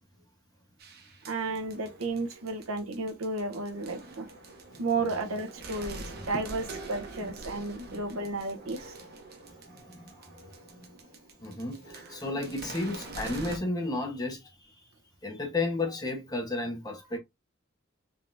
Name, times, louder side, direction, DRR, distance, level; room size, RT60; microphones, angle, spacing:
sound 1, 0.8-13.6, right 2 dB, 50° right, 0.9 m, -45 dB
voice 1, 1.3-4.2 4.8-8.9, right 3 dB, 80° right, 0.8 m, -33 dB
voice 2, 9.7-10.3 10.7-10.9 11.4-14.9 15.2-17.2, left 2 dB, 20° left, 0.6 m, -33 dB
3.7 x 3.4 x 2.5 m
head